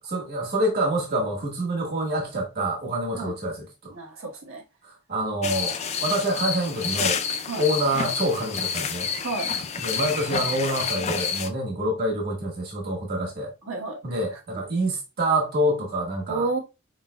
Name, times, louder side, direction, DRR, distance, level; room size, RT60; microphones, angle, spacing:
voice 1, 0.0-3.9 4.8-7.2 7.5-9.1 9.8-13.5 14.0-16.6, right 1 dB, 50° right, 1.6 m, -27 dB
voice 2, 3.9-4.6 7.5-7.7 9.2-9.5 13.6-14.2 16.3-16.6, right 3 dB, 65° right, 1.1 m, -31 dB
sound 1, 5.4-11.5, left 6 dB, 30° left, 0.4 m, -29 dB
4.5 x 3.8 x 2.2 m
head